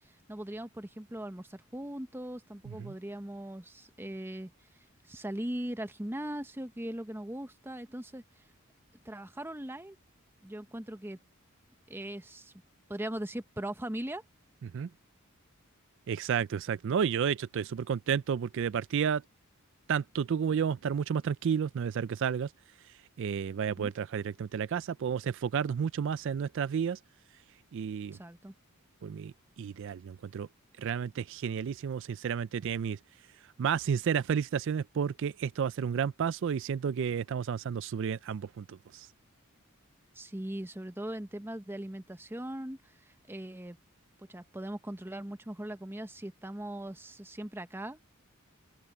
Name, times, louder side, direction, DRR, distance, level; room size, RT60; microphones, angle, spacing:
voice 1, 0.0-4.5 5.0-8.4 9.0-10.0 10.4-11.2 11.9-12.5 12.9-14.2 23.6-23.9 28.1-28.5 40.1-43.8 44.2-48.0, right 1 dB, 10° right, 0.9 m, -40 dB
voice 2, 16.1-19.2 19.9-22.5 23.2-27.0 27.7-28.2 29.0-30.5 30.8-33.0 33.6-39.1, right 7 dB, 60° right, 0.3 m, -31 dB
open air
head